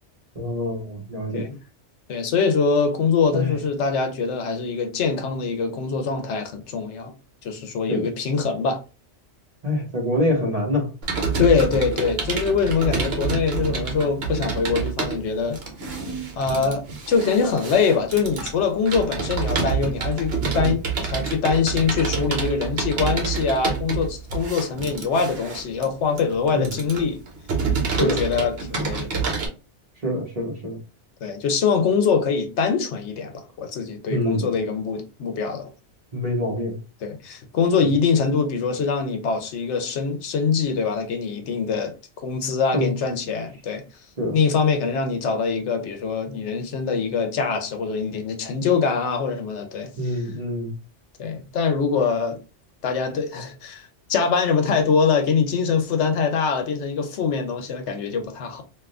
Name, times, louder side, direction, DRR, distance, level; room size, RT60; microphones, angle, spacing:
voice 1, 0.3-1.5 3.3-3.5 7.9-8.1 9.6-10.9 26.5-26.7 27.9-28.2 30.0-30.8 34.1-34.5 36.1-36.8 42.7-42.9 44.2-44.4 50.0-50.7, left 1 dB, 35° right, 1.0 m, -25 dB
voice 2, 2.1-7.1 7.4-8.8 11.4-15.6 16.4-27.2 27.9-29.2 31.2-35.7 37.0-41.9 42.2-43.8 44.3-50.1 51.2-52.4 52.8-58.6, left 5 dB, 80° left, 1.0 m, -23 dB
Computer keyboard, 11.0-29.5, right 5 dB, 65° right, 1.0 m, -27 dB
3.5 x 2.6 x 2.4 m
omnidirectional pair, 1.2 m